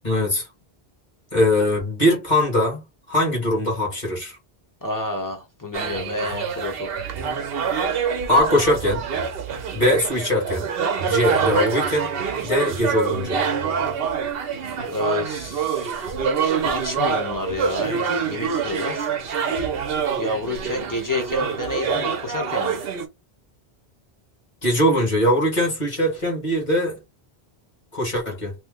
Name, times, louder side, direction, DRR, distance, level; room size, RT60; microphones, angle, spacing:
voice 1, 0.0-0.4 1.3-2.8 3.1-4.4 8.3-9.0 9.7-10.7 11.1-12.1 12.4-13.4 24.6-27.0 27.9-28.5, left 1 dB, 45° left, 1.7 m, -21 dB
voice 2, 4.8-6.9 14.9-16.1 16.6-19.1 20.2-22.8, left 2 dB, 20° left, 0.9 m, -29 dB
sound 1, 5.7-23.1, right 6 dB, 70° right, 0.9 m, -25 dB
3.0 x 2.2 x 3.5 m
omnidirectional pair, 1.1 m